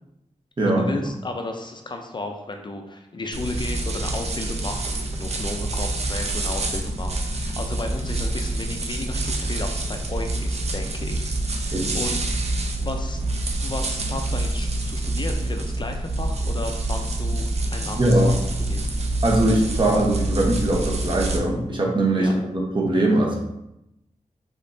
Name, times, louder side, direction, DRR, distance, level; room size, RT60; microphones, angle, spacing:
voice 1, 0.6-13.2 13.6-18.4 18.7-18.9 22.1-22.3, left 2 dB, 35° left, 4 dB, 0.4 m, -34 dB
sound 1, 3.3-21.4, right 2 dB, 55° right, 0.6 m, -27 dB
voice 2, 18.0-18.3 19.2-23.4, right 1 dB, 35° right, -2 dB, 0.9 m, -21 dB
5.3 x 3.7 x 2.6 m, 0.86 s
wide cardioid pair, 145°, 13 cm